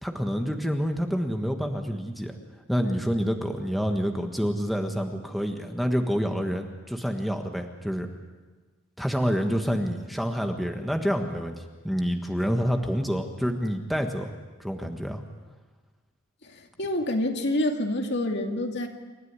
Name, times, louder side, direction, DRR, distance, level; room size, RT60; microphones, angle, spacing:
voice 1, 0.0-2.4 2.7-8.1 9.0-14.3 14.6-15.2, equal, ahead, 4 dB, 1.4 m, -28 dB
voice 2, 16.4-18.9, left 1 dB, 55° left, 3 dB, 2.4 m, -27 dB
28.0 x 13.5 x 9.7 m, 1.3 s
head